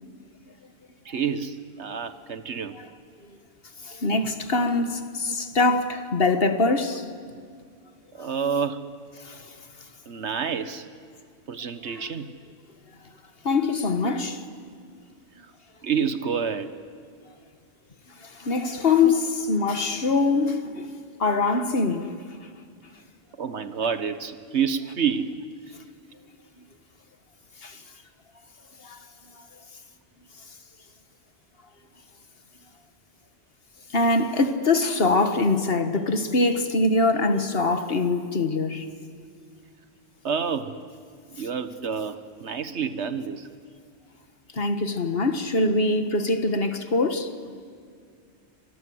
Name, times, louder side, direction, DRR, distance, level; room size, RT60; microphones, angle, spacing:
voice 1, 1.0-2.8 4.6-4.7 8.1-8.9 10.1-10.9 11.5-12.3 14.0-14.1 15.4-15.5 15.8-16.8 19.0-19.2 23.4-25.4 40.2-40.8 41.3-43.5, right 6 dB, 80° right, 1.6 m, -28 dB
voice 2, 3.9-7.0 8.2-8.3 9.2-9.6 13.4-14.4 18.2-20.9 21.2-22.2 27.6-27.8 28.8-29.0 29.4-29.5 33.9-38.9 44.5-47.3, left 3 dB, 60° left, 1.7 m, -23 dB
30.0 x 25.0 x 7.9 m
omnidirectional pair, 1.1 m